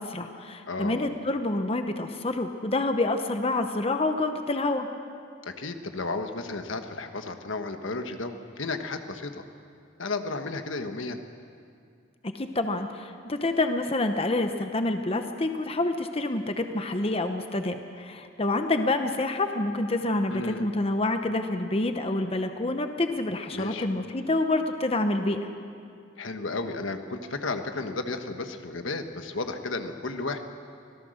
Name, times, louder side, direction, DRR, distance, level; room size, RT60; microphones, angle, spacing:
voice 1, 0.0-4.9 12.2-25.4, left 2 dB, 30° left, 7 dB, 0.9 m, -27 dB
voice 2, 0.7-1.1 5.4-9.4 10.0-11.2 20.3-20.7 23.5-23.9 26.2-30.4, left 3 dB, 75° left, 7 dB, 1.3 m, -33 dB
25.0 x 17.5 x 6.5 m, 2.4 s
head